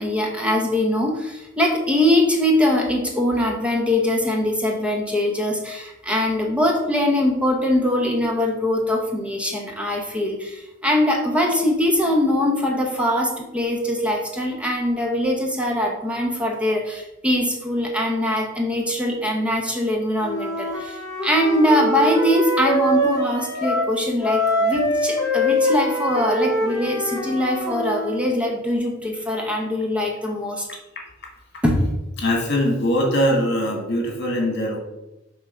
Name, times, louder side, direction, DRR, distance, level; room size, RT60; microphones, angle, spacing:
voice 1, 0.0-30.7 31.6-31.8, left 1 dB, 5° right, 0 dB, 0.9 m, -22 dB
Wind instrument woodwind instrument, 20.2-23.9 24.2-28.2, equal, 15° left, 2.5 m, -24 dB
voice 2, 32.2-34.8, equal, 60° left, 1 dB, 1.8 m, -22 dB
6.9 x 3.7 x 5.6 m, 0.93 s
head